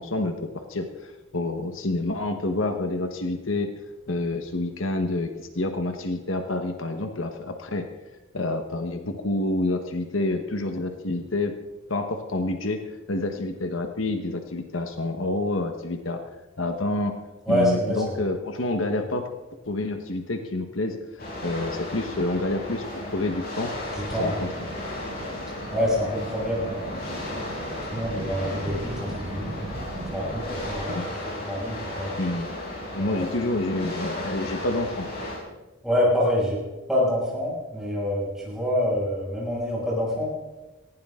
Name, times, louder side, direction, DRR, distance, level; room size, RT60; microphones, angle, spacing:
voice 1, 0.0-3.7 4.1-7.9 8.3-11.5 11.9-12.8 13.1-16.2 16.6-17.2 17.5-19.3 19.7-23.7 24.2-24.5 30.9-31.1 32.2-32.6 32.9-35.1, left 2 dB, 70° left, 6 dB, 1.4 m, -28 dB
voice 2, 17.5-18.2 23.9-24.5 25.7-27.5 27.9-29.5 30.1-30.9 31.5-32.2 33.0-33.3 35.8-36.6 36.9-40.3, equal, ahead, -6 dB, 6.6 m, -26 dB
sound 1, 21.2-35.4, left 1 dB, 45° left, 5.5 m, -35 dB
sound 2, 23.9-30.9, right 2 dB, 40° right, 0.8 m, -39 dB
19.0 x 16.0 x 3.8 m, 1.1 s
head